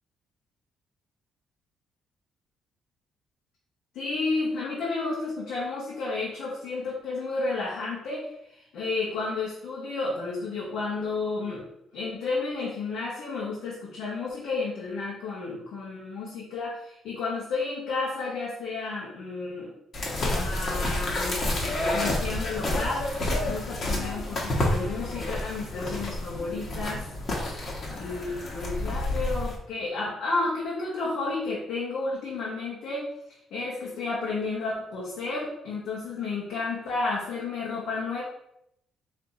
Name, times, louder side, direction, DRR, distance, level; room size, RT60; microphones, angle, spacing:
voice 1, 3.9-11.7 11.9-19.7 20.3-21.4 21.9-23.0 23.4-27.0 27.9-33.1 33.5-38.2, left 3 dB, 85° left, -6 dB, 1.1 m, -32 dB
sound 1, 19.9-29.6, left 1 dB, 50° left, 1.2 m, -29 dB
4.3 x 2.8 x 3.8 m, 0.78 s
cardioid pair, 90°, 0 cm